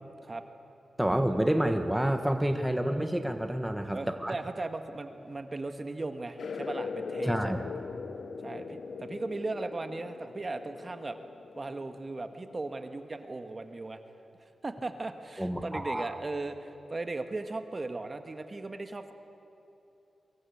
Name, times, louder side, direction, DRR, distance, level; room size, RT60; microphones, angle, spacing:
voice 1, 1.0-4.3 7.2-7.6 15.4-16.1, right 1 dB, 10° right, 6 dB, 1.4 m, -28 dB
voice 2, 3.9-7.5 8.4-11.2 11.5-14.0 14.4-19.1, right 2 dB, 40° right, 7 dB, 1.7 m, -37 dB
sound 1, 6.4-12.5, left 5 dB, 80° left, 1.1 m, -40 dB
24.0 x 23.0 x 8.6 m, 2.9 s
cardioid pair, 70°, 0 cm